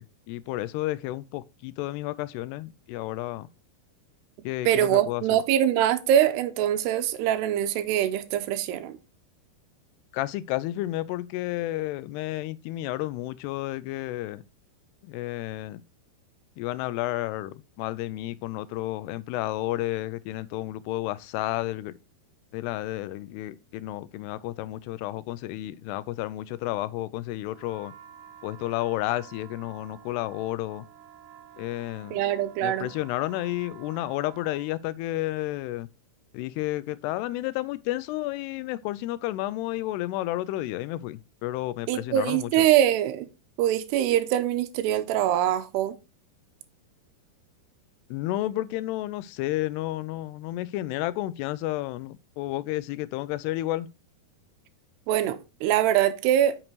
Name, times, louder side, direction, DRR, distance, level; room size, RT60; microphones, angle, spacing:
voice 1, 0.0-3.5 4.4-5.4 10.1-14.4 15.0-15.8 16.6-22.0 22.5-27.9 28.4-30.9 31.6-32.2 32.6-35.9 36.3-42.5 48.1-53.9, left 16 dB, 85° left, 2.6 m, -31 dB
voice 2, 4.7-9.0 32.1-32.9 41.9-43.3 43.6-46.0 55.1-56.6, right 11 dB, 85° right, 2.8 m, -23 dB
sound 1, 27.5-34.7, right 10 dB, 70° right, 3.2 m, -50 dB
9.0 x 6.5 x 3.0 m
omnidirectional pair, 4.7 m